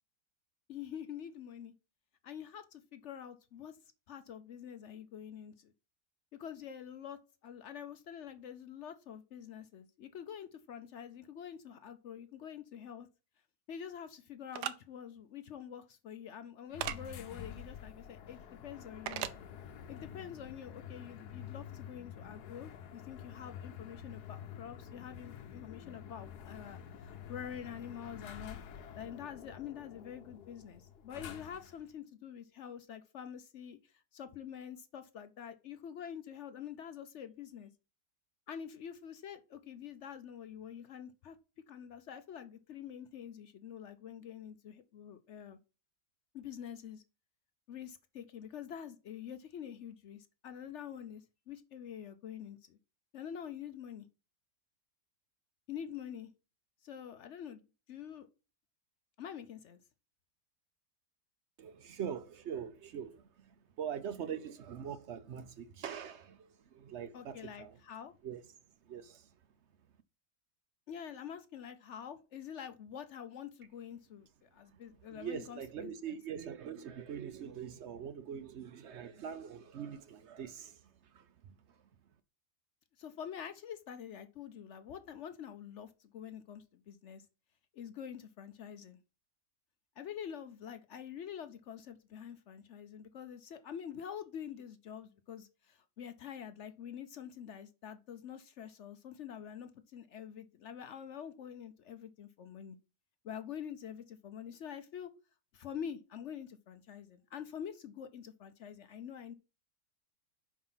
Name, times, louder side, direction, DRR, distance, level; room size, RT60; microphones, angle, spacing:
voice 1, 0.7-1.7 2.2-3.8 4.1-5.7 6.3-13.1 13.7-19.2 19.9-28.6 29.0-37.7 38.5-41.4 41.7-45.6 46.3-47.0 47.7-52.8 53.1-54.1 55.7-56.3 56.8-57.6 57.9-58.3 59.2-59.8 67.1-68.1 70.9-75.9 83.0-87.2 87.7-89.0 90.0-102.8 103.2-105.1 105.5-109.3, left 8 dB, 60° left, 0.8 m, -46 dB
sound 1, 14.5-14.8 16.8-17.0 19.1-19.4, right 11 dB, 85° right, 1.2 m, -36 dB
sound 2, 16.7-31.9, left 8 dB, 85° left, 1.3 m, -49 dB
voice 2, 61.6-67.8 68.2-68.4 68.8-69.3 75.1-81.8, right 8 dB, 60° right, 0.8 m, -43 dB
5.7 x 4.8 x 5.6 m
omnidirectional pair, 1.7 m